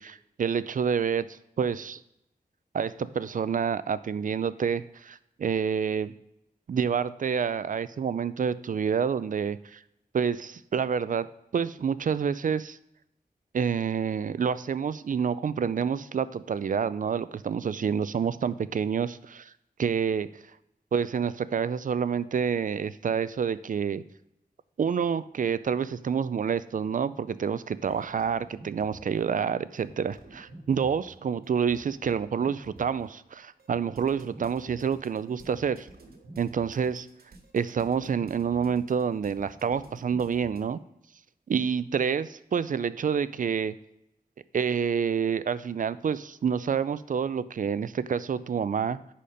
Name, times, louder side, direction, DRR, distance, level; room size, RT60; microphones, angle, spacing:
voice 1, 0.0-2.0 2.7-6.1 6.7-9.8 10.1-11.3 11.5-12.8 13.5-19.5 19.8-20.3 20.9-24.0 24.8-35.9 36.4-37.1 37.5-40.8 41.5-43.7 44.5-49.1, right 7 dB, 60° right, 15 dB, 0.4 m, -28 dB
sound 1, 27.8-29.5 29.8-40.6, right 2 dB, 75° right, 1.4 m, -51 dB
10.5 x 4.3 x 5.0 m, 0.82 s
wide cardioid pair, 110°, 16 cm